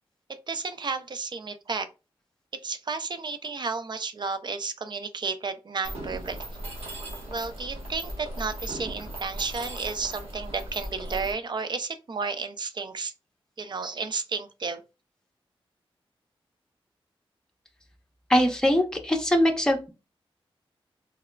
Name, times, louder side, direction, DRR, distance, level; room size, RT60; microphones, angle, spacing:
voice 1, 0.5-1.9 2.6-6.4 7.3-13.1 13.6-14.8, right 4 dB, 50° right, 0.5 m, -32 dB
Mechanisms, 5.8-11.3, right 1 dB, 80° right, 1.1 m, -37 dB
voice 2, 18.3-19.9, equal, 5° left, 0.7 m, -22 dB
3.4 x 3.3 x 2.2 m
wide cardioid pair, 75°, 10 cm